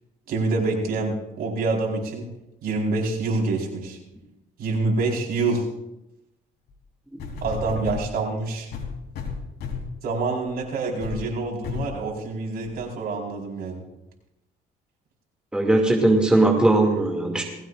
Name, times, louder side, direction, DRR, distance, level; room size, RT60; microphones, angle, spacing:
voice 1, 0.3-2.2 2.6-4.0 4.6-5.6 7.4-8.7 10.0-13.8, right 3 dB, 65° right, -1 dB, 4.7 m, -26 dB
sound 1, 6.7-6.8 7.2-8.1 8.7-10.0 10.5-10.6 11.0-11.2 11.6-11.9 12.6-12.7, left 6 dB, 70° left, 3.3 m, -32 dB
voice 2, 15.5-17.4, right 2 dB, 5° right, 0 dB, 2.5 m, -19 dB
19.5 x 16.5 x 2.6 m, 0.90 s
cardioid pair, 110°, 17 cm